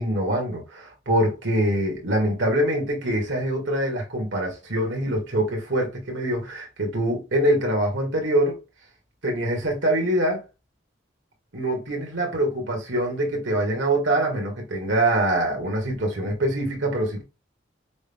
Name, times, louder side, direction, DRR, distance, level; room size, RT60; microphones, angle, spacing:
voice 1, 0.0-8.6 9.2-10.4 11.5-17.2, right 1 dB, 85° right, 1.7 m, -24 dB
6.1 x 3.6 x 2.2 m
head